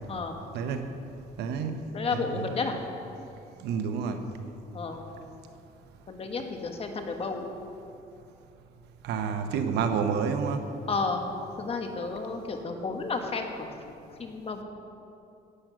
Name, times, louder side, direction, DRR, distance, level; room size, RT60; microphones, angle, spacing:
voice 1, 0.5-0.9 1.4-2.4 3.6-4.2 9.0-10.7, right 6 dB, 80° right, 7 dB, 0.9 m, -29 dB
voice 2, 1.9-2.8 4.7-5.0 6.1-7.5 10.9-11.3 11.6-14.6, left 4 dB, 35° left, 4 dB, 1.3 m, -32 dB
11.5 x 9.1 x 6.2 m, 2.7 s
cardioid pair, 110°, 17 cm